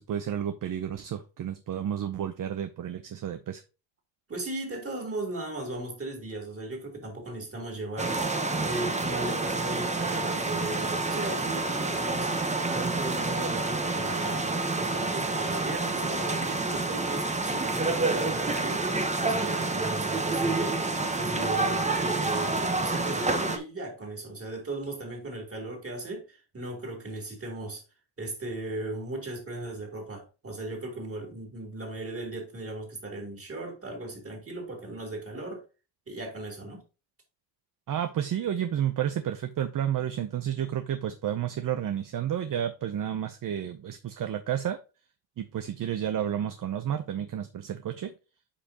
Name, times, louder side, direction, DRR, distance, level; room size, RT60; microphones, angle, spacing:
voice 1, 0.0-3.6 37.9-44.8 45.4-48.1, right 10 dB, 45° right, 0.7 m, -31 dB
voice 2, 4.3-8.2 8.6-12.3 12.7-18.8 19.2-20.8 21.2-27.8 28.2-35.6 36.1-36.8, right 2 dB, 30° right, 3.2 m, -37 dB
sound 1, 8.0-23.6, right 3 dB, 15° right, 0.9 m, -28 dB
8.5 x 5.2 x 2.8 m
cardioid pair, 95°, 45 cm